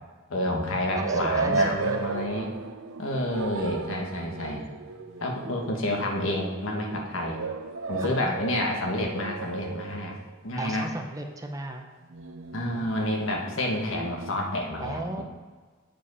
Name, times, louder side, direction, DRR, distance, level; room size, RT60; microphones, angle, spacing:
voice 1, 0.3-2.5 3.0-4.6 5.2-7.4 7.9-10.2 10.4-10.9 12.5-15.2, left 1 dB, 80° left, 1 dB, 1.3 m, -29 dB
voice 2, 0.9-2.2 8.0-8.4 10.5-11.9 14.8-15.2, right 2 dB, 15° right, 3 dB, 0.7 m, -35 dB
sound 1, 0.9-10.4 12.1-14.5, right 4 dB, 85° right, 0.6 m, -34 dB
7.6 x 5.0 x 4.8 m, 1.4 s
head